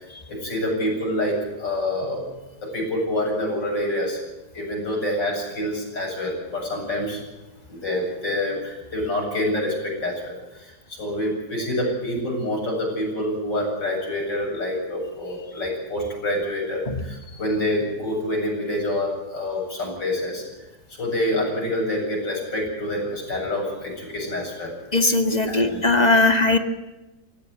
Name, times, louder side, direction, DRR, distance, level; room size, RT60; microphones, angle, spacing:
voice 1, 0.3-2.3 2.6-4.2 4.5-7.2 7.7-20.4 21.0-24.7 25.5-25.8, left 1 dB, 90° left, -1 dB, 8.8 m, -27 dB
voice 2, 24.9-26.6, left 2 dB, 25° left, 6 dB, 1.9 m, -19 dB
19.5 x 17.0 x 9.3 m, 1.0 s
omnidirectional pair, 1.9 m